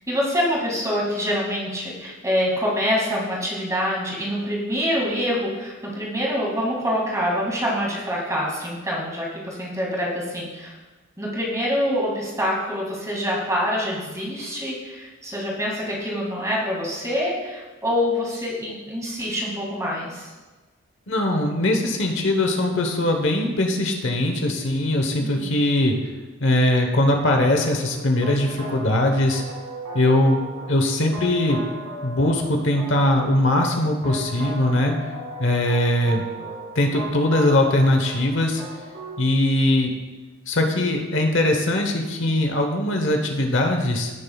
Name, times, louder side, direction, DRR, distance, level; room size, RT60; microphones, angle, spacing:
voice 1, 0.1-10.7 11.2-20.3 25.2-25.6, equal, 15° right, -4 dB, 2.1 m, -26 dB
voice 2, 21.1-25.9 26.4-29.4 29.9-30.4 30.7-31.6 32.0-34.9 35.4-36.2 36.7-38.6 39.2-39.9 40.5-44.1, left 1 dB, 60° left, 4 dB, 1.0 m, -21 dB
sound 1, 27.7-39.3, right 2 dB, 85° right, 2.2 m, -36 dB
16.0 x 6.7 x 2.3 m, 1.2 s
head